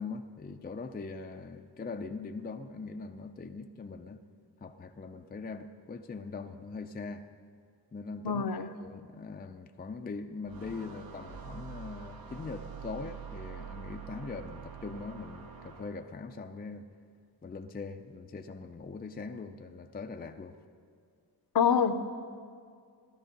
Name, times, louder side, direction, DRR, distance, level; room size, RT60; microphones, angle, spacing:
voice 1, 0.0-4.2 4.6-7.2 7.9-16.8 17.4-20.6, left 4 dB, 20° left, 6 dB, 0.4 m, -41 dB
voice 2, 8.2-8.7 21.5-21.9, left 7 dB, 55° left, 9 dB, 0.7 m, -25 dB
sound 1, 10.5-16.2, right 6 dB, 55° right, 0.9 m, -45 dB
15.5 x 12.0 x 5.3 m, 2.2 s
wide cardioid pair, 135°, 43 cm